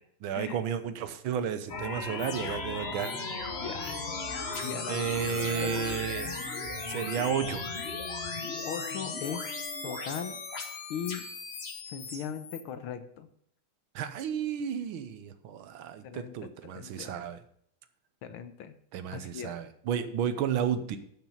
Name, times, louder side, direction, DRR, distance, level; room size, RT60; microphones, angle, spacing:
voice 1, 0.2-3.1 4.9-6.3 6.9-7.8 13.9-17.4 18.9-21.0, right 8 dB, 75° right, 11 dB, 1.6 m, -32 dB
sound 1, 1.7-12.6, left 3 dB, 35° left, 1.2 m, -36 dB
voice 2, 3.6-4.0 4.6-5.1 5.3-5.8 8.6-9.5 9.8-10.4 10.9-11.2 11.9-13.3 16.0-17.2 18.2-18.7 19.1-19.5, left 8 dB, 80° left, 10 dB, 1.8 m, -39 dB
12.0 x 6.0 x 5.5 m, 0.67 s
omnidirectional pair, 2.3 m